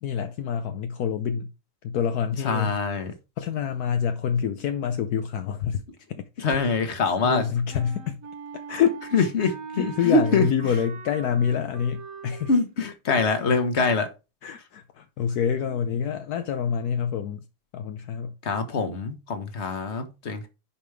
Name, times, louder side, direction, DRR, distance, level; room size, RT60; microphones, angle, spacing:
voice 1, 0.0-1.5 1.8-2.8 3.4-5.8 6.1-6.7 7.2-8.2 8.7-9.3 9.8-12.5 13.1-13.2 14.4-17.5 17.7-18.3, left 8 dB, 70° left, 0.9 m, -27 dB
voice 2, 2.4-3.1 6.4-7.4 9.1-10.5 12.5-14.1 18.4-20.5, left 3 dB, 35° left, 1.4 m, -24 dB
Wind instrument woodwind instrument, 7.7-12.6, right 5 dB, 50° right, 1.2 m, -41 dB
10.5 x 5.1 x 3.4 m
omnidirectional pair, 2.3 m